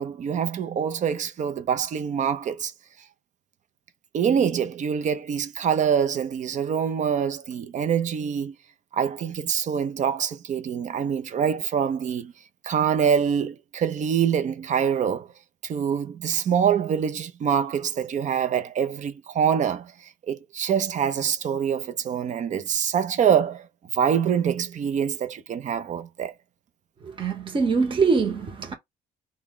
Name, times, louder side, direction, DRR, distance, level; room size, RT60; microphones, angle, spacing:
voice 1, 0.0-2.7 4.1-8.5 8.9-12.3 12.6-15.3 15.6-19.9 20.3-23.7 23.9-26.3, right 8 dB, 45° right, 0.6 m, -25 dB
voice 2, 27.0-28.7, right 4 dB, 30° right, 1.1 m, -23 dB
3.6 x 2.3 x 3.6 m
cardioid pair, 110°, 17 cm